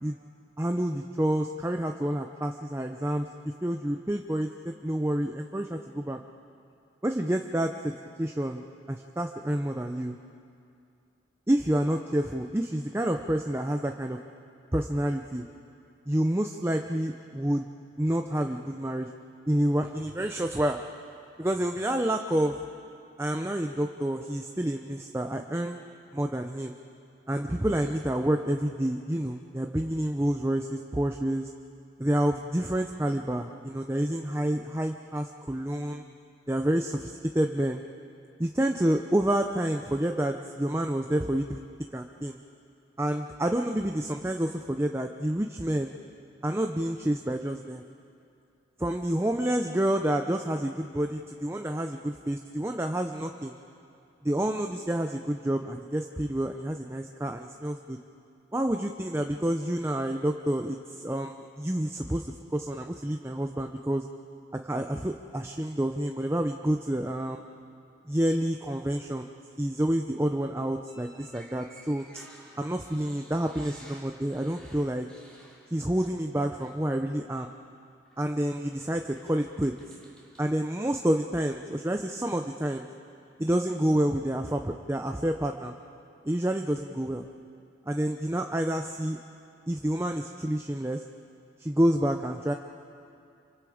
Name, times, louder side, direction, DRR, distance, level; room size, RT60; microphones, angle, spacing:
voice 1, 0.6-3.3 3.6-6.2 7.0-7.9 8.2-10.2 11.5-14.2 14.7-15.5 16.1-17.7 18.0-19.1 19.5-20.8 21.4-22.6 23.2-25.8 26.1-26.7 27.3-31.5 32.0-36.0 36.5-37.8 38.4-41.6 41.9-42.4 43.0-45.9 46.4-47.8 48.8-53.6 54.2-58.0 58.5-64.0 64.5-67.4 68.1-69.3 69.6-72.2 72.6-75.1 75.7-77.5 78.2-79.7 80.4-82.9 83.4-85.7 86.2-87.3 87.9-89.2 89.7-91.0 91.6-92.5, right 1 dB, 15° right, 4 dB, 0.6 m, -28 dB
sound 1, 70.8-76.3 76.6-76.8 78.1-78.2 78.8-80.5, equal, 5° left, 3.2 m, -54 dB
27.5 x 24.5 x 5.0 m, 2.5 s
head